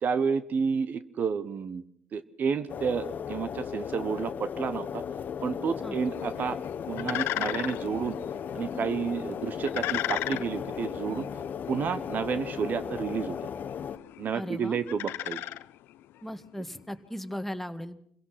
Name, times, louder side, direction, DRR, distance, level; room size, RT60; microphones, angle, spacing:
voice 1, 0.0-1.8 2.1-5.0 5.4-6.6 6.9-8.2 8.5-11.3 11.7-13.4 14.2-15.4, right 6 dB, 50° right, 14 dB, 1.1 m, -30 dB
sound 1, 2.7-14.0, left 7 dB, 50° left, 1.1 m, -36 dB
sound 2, 5.9-16.3, left 14 dB, 75° left, 0.7 m, -37 dB
voice 2, 14.3-14.8 16.2-18.0, equal, 5° left, 10 dB, 1.7 m, -37 dB
26.5 x 16.5 x 5.9 m, 0.66 s
supercardioid pair, 70°, 4 cm